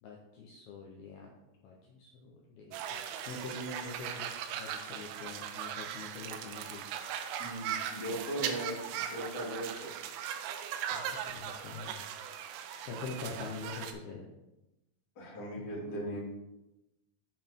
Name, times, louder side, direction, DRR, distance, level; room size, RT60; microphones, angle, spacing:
voice 1, 0.0-1.3 1.6-6.8 10.9-12.0 12.9-14.3 15.7-16.2, left 3 dB, 85° left, -2 dB, 2.2 m, -44 dB
sound 1, 2.7-13.9, right 9 dB, 85° right, 3.3 m, -39 dB
voice 2, 7.4-10.1 15.2-16.2, right 1 dB, 30° left, -5 dB, 2.1 m, -38 dB
8.0 x 7.0 x 3.7 m, 0.95 s
omnidirectional pair, 5.7 m